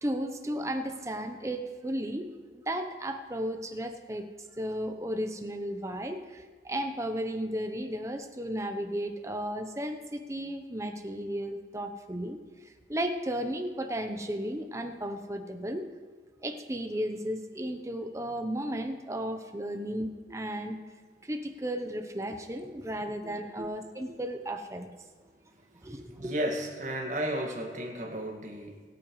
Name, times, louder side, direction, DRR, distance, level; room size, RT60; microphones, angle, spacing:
voice 1, 0.0-2.3 2.5-4.3 4.5-15.8 16.4-20.8 21.2-24.9 25.8-26.3, equal, 15° right, 7 dB, 0.8 m, -34 dB
voice 2, 25.8-28.8, right 1 dB, 45° right, 1 dB, 1.9 m, -34 dB
22.0 x 8.8 x 3.2 m, 1.5 s
head